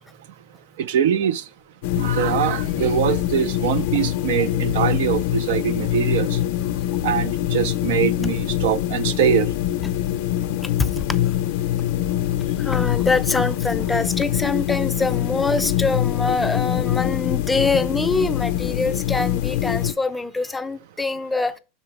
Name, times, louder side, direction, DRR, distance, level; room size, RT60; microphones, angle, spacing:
voice 1, 0.9-1.4 2.0-6.3 7.0-9.5, right 9 dB, 75° right, 0.5 m, -22 dB
sound 1, 1.8-19.9, left 12 dB, 65° left, 0.5 m, -24 dB
voice 2, 12.6-21.6, left 3 dB, 10° left, 0.4 m, -24 dB
6.0 x 4.3 x 4.5 m
supercardioid pair, 140°, 0 cm